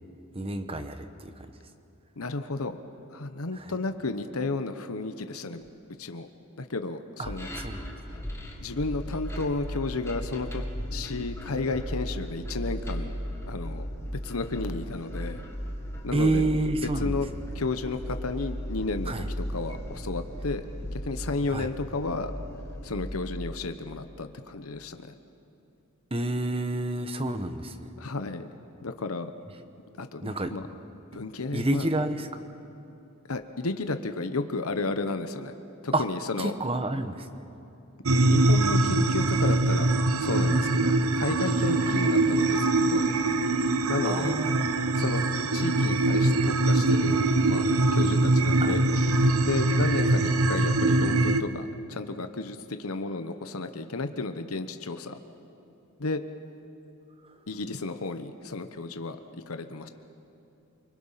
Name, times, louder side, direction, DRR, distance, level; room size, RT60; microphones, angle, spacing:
voice 1, 0.3-1.5 3.5-3.7 7.2-7.9 16.1-17.4 19.1-19.3 21.5-21.7 26.1-27.8 30.2-30.5 31.5-32.3 35.9-36.0 36.4-37.3 41.9-42.0 44.0-44.7 48.6-48.8 57.2-57.3, right 2 dB, 25° right, 9 dB, 1.1 m, -29 dB
voice 2, 2.2-2.8 3.1-5.6 6.0-6.3 6.6-7.5 8.1-8.2 8.6-10.6 10.9-13.1 13.5-13.9 14.2-15.4 16.0-16.4 17.0-17.3 17.5-20.6 20.9-22.3 22.8-25.1 28.0-28.5 28.8-29.3 30.0-30.6 31.1-31.9 33.3-35.6 35.8-36.5 38.3-43.0 43.9-44.4 44.9-45.2 45.5-48.9 49.4-55.2 56.0-56.2 57.5-59.9, left 3 dB, 85° left, 9 dB, 1.0 m, -32 dB
sound 1, 7.2-23.5, equal, 15° left, 2.1 m, -36 dB
sound 2, 38.1-51.4, right 2 dB, 85° right, 0.9 m, -23 dB
29.5 x 21.5 x 5.8 m, 2.8 s
head